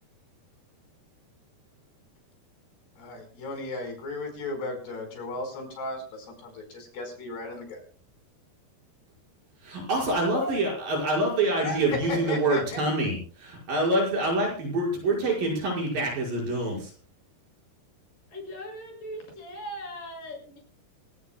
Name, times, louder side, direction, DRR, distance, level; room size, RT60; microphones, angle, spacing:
voice 1, 3.0-7.8 11.6-12.8, left 2 dB, 85° left, 4 dB, 7.0 m, -35 dB
voice 2, 9.6-16.9, right 2 dB, 60° right, -1 dB, 7.2 m, -26 dB
voice 3, 18.3-20.6, equal, 55° left, 1 dB, 8.3 m, -38 dB
26.5 x 17.5 x 2.3 m, 0.41 s
omnidirectional pair, 4.6 m